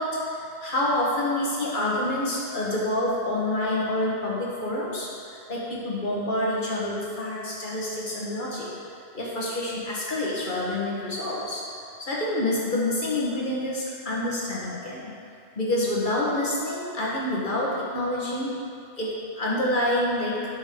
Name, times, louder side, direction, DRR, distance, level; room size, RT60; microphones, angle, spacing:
voice 1, 0.0-8.7 9.1-11.6 12.0-15.1 15.5-18.6 19.0-20.6, left 1 dB, 50° left, -5 dB, 1.6 m, -27 dB
10.5 x 5.1 x 3.8 m, 2.4 s
omnidirectional pair, 1.1 m